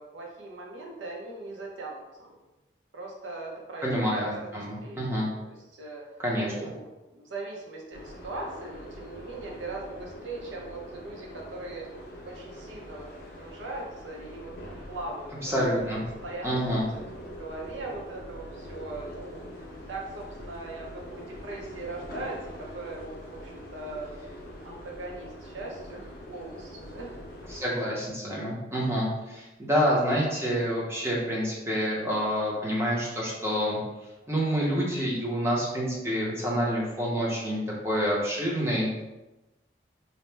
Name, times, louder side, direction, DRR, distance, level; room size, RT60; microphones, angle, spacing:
voice 1, 0.0-2.4 2.9-4.3 4.8-6.0 6.4-11.9 12.2-13.1 13.4-15.5 15.8-15.9 16.2-16.8 17.1-19.5 19.9-27.2, right 2 dB, 90° right, -1 dB, 0.7 m, -40 dB
voice 2, 3.8-5.3 6.2-6.5 15.4-16.0 16.4-16.9 27.5-33.8 34.3-39.0, equal, 15° right, -5 dB, 0.6 m, -28 dB
sound 1, 7.9-27.6, equal, 50° left, 0.5 m, -44 dB
2.8 x 2.0 x 3.3 m, 1.0 s
head